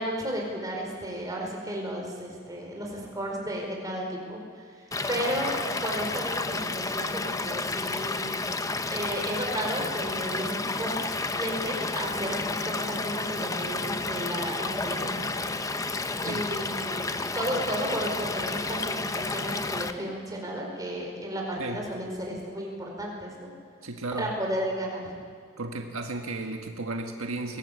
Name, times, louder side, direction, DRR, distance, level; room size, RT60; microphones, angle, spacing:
voice 1, 0.0-4.4 4.8-5.5 5.8-8.3 8.9-11.0 11.3-15.5 15.9-23.5 24.1-25.2, equal, 15° right, -1 dB, 4.9 m, -33 dB
Stream / Liquid, 4.9-19.9, left 3 dB, 15° left, 0.7 m, -31 dB
voice 2, 23.8-24.3 25.6-27.6, right 2 dB, 75° right, 3 dB, 1.6 m, -34 dB
22.0 x 18.0 x 8.4 m, 2.2 s
head